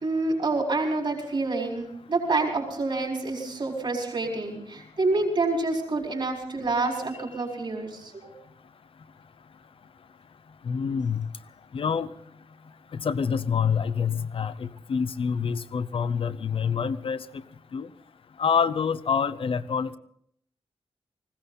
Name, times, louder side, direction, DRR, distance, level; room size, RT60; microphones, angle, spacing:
voice 1, 0.0-8.3, right 3 dB, 50° right, -1 dB, 4.6 m, -27 dB
voice 2, 10.6-11.3 11.7-12.1 13.0-17.2 17.7-17.9 18.4-20.0, left 6 dB, 60° left, 13 dB, 0.6 m, -26 dB
20.0 x 16.0 x 4.0 m, 0.70 s
wide cardioid pair, 175°, 10 cm